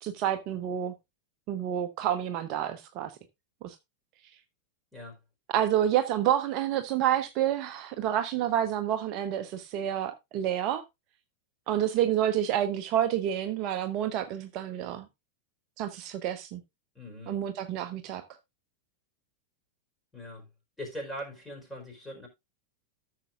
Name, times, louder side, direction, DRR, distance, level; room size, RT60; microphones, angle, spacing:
voice 1, 0.0-0.9 1.5-3.1 3.6-3.7 5.5-10.8 11.7-15.1 15.8-16.6 17.3-18.2, right 11 dB, 40° right, 0.8 m, -29 dB
voice 2, 16.9-17.4 20.1-20.5 20.8-22.3, equal, 10° left, 4.7 m, -41 dB
14.0 x 6.7 x 2.5 m
figure-of-eight pair, 90°, 0 cm